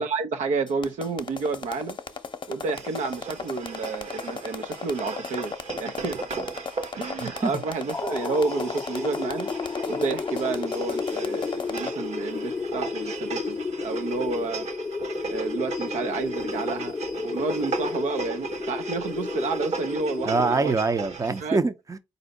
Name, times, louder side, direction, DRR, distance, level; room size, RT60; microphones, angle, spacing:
voice 1, 0.0-2.0 2.5-6.2 6.9-9.5 9.9-13.6 13.8-14.7 15.3-20.8 21.4-21.6, right 4 dB, 75° right, 0.7 m, -30 dB
sound 1, 0.7-11.9, left 5 dB, 40° left, 0.8 m, -35 dB
sound 2, 2.7-21.4, right 4 dB, 55° right, 1.2 m, -38 dB
voice 2, 7.2-7.5 20.3-22.0, right 3 dB, 25° right, 0.7 m, -24 dB
sound 3, 7.9-21.2, left 4 dB, 20° left, 0.4 m, -32 dB
4.2 x 2.7 x 4.0 m
supercardioid pair, 45°, 13 cm